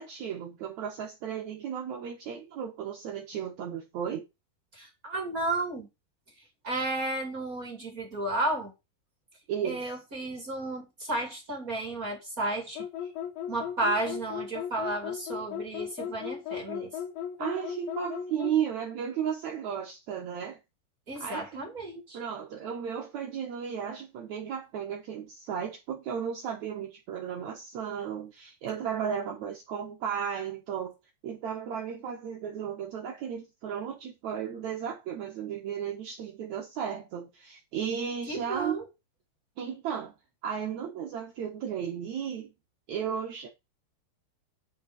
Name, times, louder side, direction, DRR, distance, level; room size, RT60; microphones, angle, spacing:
voice 1, 0.0-4.2 9.5-9.9 17.4-20.6 21.2-21.6 22.1-31.0 31.2-38.8 39.6-40.1 40.4-42.5 42.9-43.5, right 8 dB, 70° right, 1.7 m, -34 dB
voice 2, 4.7-5.9 6.6-8.7 9.6-12.9 13.5-16.9 21.1-22.2 38.3-38.8, right 2 dB, 25° right, 2.1 m, -33 dB
sound 1, 12.8-18.6, left 9 dB, 80° left, 2.9 m, -36 dB
9.0 x 5.4 x 5.2 m
omnidirectional pair, 5.2 m